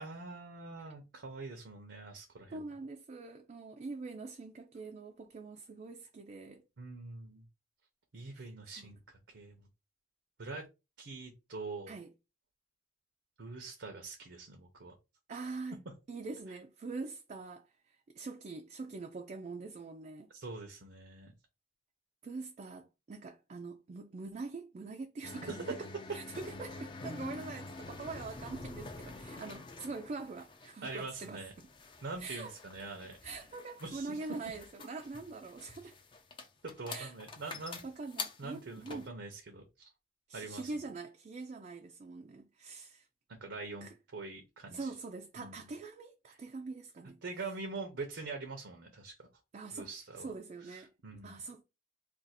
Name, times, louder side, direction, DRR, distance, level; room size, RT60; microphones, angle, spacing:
voice 1, 0.0-2.6 6.8-7.4 8.1-9.0 9.3-9.6 10.4-10.7 11.0-11.9 13.4-14.9 16.5-16.6 20.3-21.3 25.5-25.6 30.8-31.5 32.0-33.2 33.8-34.2 36.8-37.8 38.4-39.9 40.3-40.7 43.3-44.9 45.4-45.7 46.3-46.4 47.2-49.3 49.7-50.3 50.6-51.4, right 3 dB, 80° right, 0.7 m, -44 dB
voice 2, 2.5-6.6 8.3-8.5 8.8-8.9 11.9-12.1 15.3-15.8 16.1-20.3 22.2-25.9 26.1-31.7 32.2-32.5 33.2-35.9 36.9-37.1 37.8-39.1 40.3-43.1 43.8-43.9 44.7-47.2 49.5-49.9 50.2-50.9 51.2-51.6, right 3 dB, 40° right, 0.3 m, -44 dB
sound 1, 25.2-39.1, left 3 dB, 30° left, 0.5 m, -47 dB
2.5 x 2.4 x 4.1 m
head